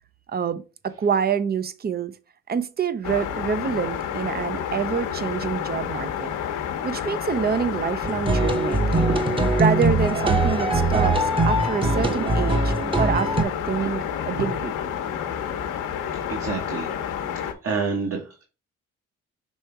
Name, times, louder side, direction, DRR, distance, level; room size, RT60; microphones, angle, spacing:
voice 1, 0.3-2.1 2.5-6.3 6.8-9.1 9.6-14.7, right 6 dB, 30° right, 0.7 m, -27 dB
sound 1, 3.0-17.5, left 8 dB, 90° left, 1.1 m, -30 dB
sound 2, 8.0-13.4, right 2 dB, 15° right, 1.0 m, -22 dB
voice 2, 16.3-18.4, right 4 dB, 50° right, 1.5 m, -29 dB
6.4 x 3.4 x 4.4 m
cardioid pair, 90°, 30 cm